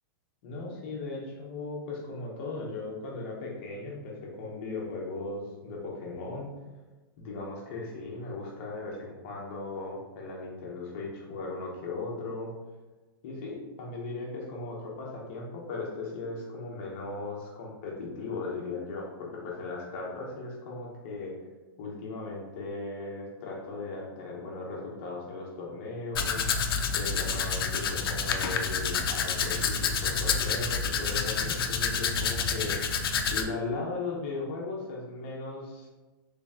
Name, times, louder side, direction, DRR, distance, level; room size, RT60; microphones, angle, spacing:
voice 1, 0.4-6.5 7.2-12.5 13.2-21.4 21.8-26.4 26.9-32.9 33.3-35.9, left 3 dB, 30° left, -2 dB, 0.8 m, -37 dB
Domestic sounds home sounds, 26.1-33.4, left 5 dB, 80° left, 0.5 m, -28 dB
3.2 x 2.9 x 3.5 m, 1.2 s
supercardioid pair, 175°, 12 cm